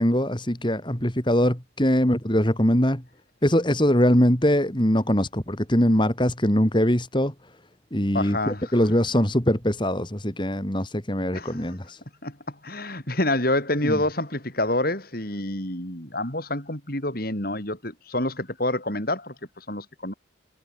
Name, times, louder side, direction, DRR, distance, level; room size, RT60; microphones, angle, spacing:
voice 1, 0.0-3.0 3.4-7.3 7.9-12.0 13.8-14.0, equal, 25° left, 3.1 m, -22 dB
voice 2, 8.1-8.7 11.3-11.6 12.2-20.1, left 1 dB, 50° left, 5.6 m, -28 dB
head